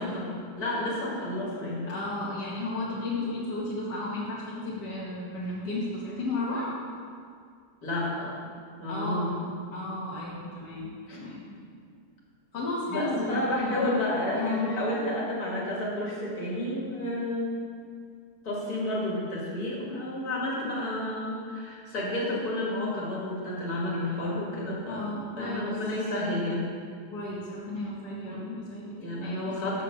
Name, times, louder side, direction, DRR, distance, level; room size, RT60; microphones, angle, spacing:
voice 1, 0.0-1.9 7.8-8.3 8.8-9.3 11.1-11.2 12.9-17.5 18.4-26.7 28.2-28.4 29.0-29.8, left 1 dB, 65° left, -5 dB, 2.4 m, -31 dB
voice 2, 1.8-6.7 8.9-9.5 9.7-11.4 12.5-14.0 14.3-14.7 24.9-25.8 27.1-29.8, left 2 dB, 85° left, -7 dB, 1.8 m, -33 dB
6.6 x 6.4 x 6.8 m, 2.2 s
omnidirectional pair, 1.7 m